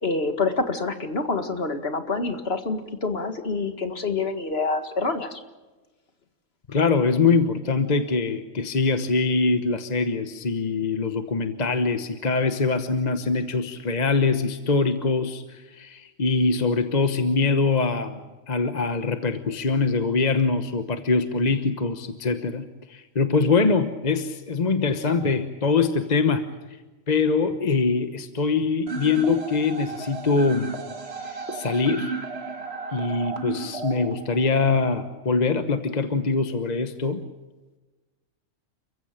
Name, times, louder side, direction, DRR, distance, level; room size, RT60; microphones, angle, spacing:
voice 1, 0.0-5.4, left 3 dB, 50° left, 7 dB, 2.1 m, -27 dB
voice 2, 6.7-18.2 18.5-22.6 22.9-26.4 27.1-30.7 31.5-32.1 32.9-37.2, left 4 dB, 35° left, 8 dB, 1.2 m, -23 dB
sound 1, 28.9-34.9, right 3 dB, 50° right, 2.0 m, -34 dB
29.5 x 15.5 x 9.0 m, 1.2 s
omnidirectional pair, 1.4 m